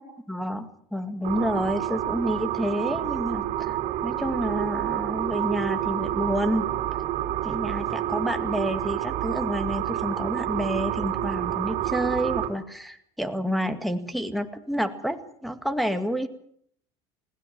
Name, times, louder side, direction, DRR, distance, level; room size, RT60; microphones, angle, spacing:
voice 1, 0.3-6.7 7.4-16.3, equal, ahead, 10 dB, 2.1 m, -29 dB
sound 1, 1.2-12.5, right 12 dB, 60° right, 3.1 m, -29 dB
20.5 x 17.0 x 7.7 m, 0.65 s
supercardioid pair, 105°, 14 cm